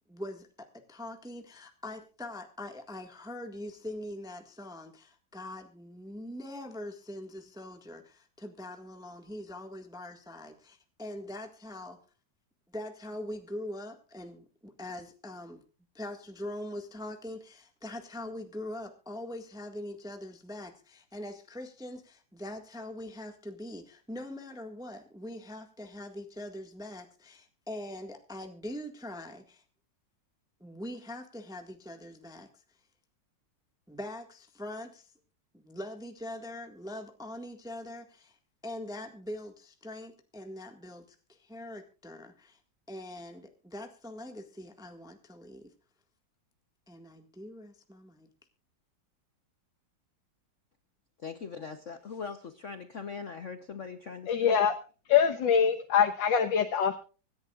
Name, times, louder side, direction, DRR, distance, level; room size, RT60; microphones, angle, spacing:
voice 1, 0.1-12.0 12.7-15.6 15.9-29.6 30.6-32.6 33.9-35.1 35.5-38.4 38.6-42.6 42.9-45.7 46.9-48.3, left 1 dB, ahead, 5 dB, 1.5 m, -42 dB
voice 2, 51.2-54.5, left 5 dB, 45° left, 8 dB, 1.2 m, -41 dB
voice 3, 54.3-54.7 55.1-57.0, left 7 dB, 80° left, 5 dB, 1.9 m, -24 dB
25.5 x 11.0 x 2.4 m, 0.36 s
omnidirectional pair, 2.0 m